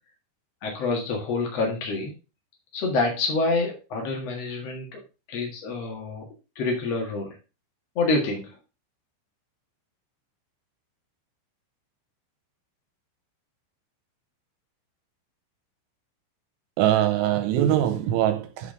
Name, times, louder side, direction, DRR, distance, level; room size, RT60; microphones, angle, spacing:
voice 1, 0.6-2.1 2.7-5.0 5.3-6.3 6.5-7.4 7.9-8.6, left 3 dB, 90° left, 1.4 m, -27 dB
voice 2, 16.8-18.7, right 12 dB, 80° right, 3.2 m, -22 dB
10.0 x 4.3 x 4.9 m
omnidirectional pair, 6.0 m